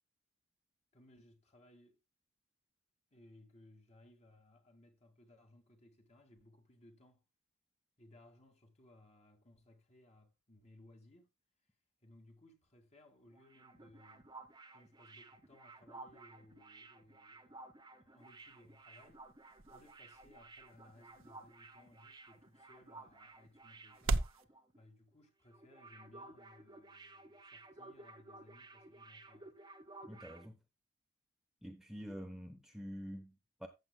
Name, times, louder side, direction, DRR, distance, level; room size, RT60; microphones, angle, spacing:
voice 1, 0.9-2.0 3.1-7.2 8.0-11.3 12.0-14.3 14.7-19.3 19.7-24.2 24.8-29.5, left 1 dB, 35° left, 2.1 m, -63 dB
sound 1, 13.2-24.8 25.0-25.2 25.5-30.5, right 2 dB, 20° right, 1.2 m, -55 dB
sound 2, 18.2-24.4, right 3 dB, 75° right, 0.7 m, -42 dB
voice 2, 30.0-30.6 31.6-33.7, equal, ahead, 0.9 m, -47 dB
14.5 x 7.6 x 2.3 m
head